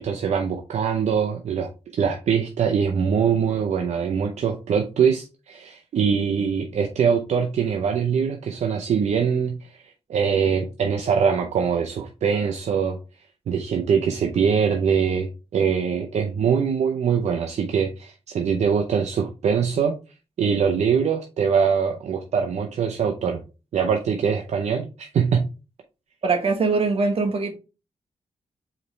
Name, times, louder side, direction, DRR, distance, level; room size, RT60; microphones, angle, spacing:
voice 1, 0.0-1.7 2.0-9.8 10.1-13.0 13.5-19.9 20.4-23.4 23.7-25.4, right 6 dB, 75° right, 0.6 m, -23 dB
voice 2, 26.2-27.5, right 4 dB, 55° right, 1.3 m, -22 dB
4.8 x 3.2 x 3.1 m
cardioid pair, 75°, 12 cm